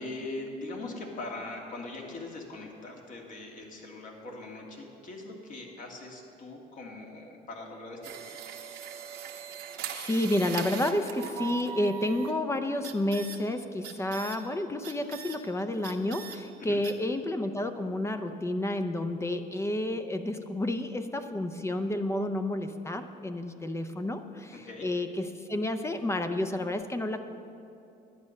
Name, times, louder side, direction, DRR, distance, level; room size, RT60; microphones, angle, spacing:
voice 1, 0.0-8.2 16.6-16.8 24.5-24.9, left 2 dB, 50° left, 1 dB, 2.1 m, -41 dB
sound 1, 8.0-12.3 12.8-13.4 13.8-14.4 14.8-15.4 15.8-16.4 16.8-16.9, right 9 dB, 80° right, 1.1 m, -40 dB
voice 2, 9.9-27.3, left 1 dB, 15° left, 8 dB, 0.6 m, -30 dB
11.0 x 9.6 x 6.4 m, 2.7 s
cardioid pair, 110°, 17 cm